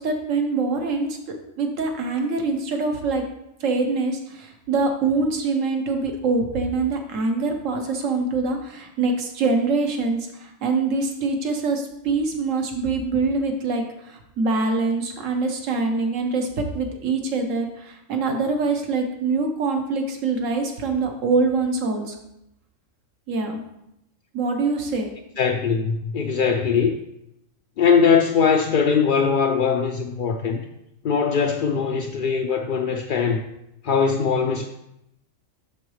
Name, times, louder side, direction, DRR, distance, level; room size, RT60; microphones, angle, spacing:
voice 1, 0.0-3.2 3.6-22.2 23.3-23.6 24.3-25.1, right 3 dB, 75° right, 4 dB, 1.3 m, -24 dB
voice 2, 25.4-27.0 27.8-30.6 31.0-33.4 33.8-34.7, left 6 dB, 65° left, 2 dB, 0.5 m, -21 dB
11.0 x 3.9 x 3.2 m, 0.84 s
omnidirectional pair, 1.3 m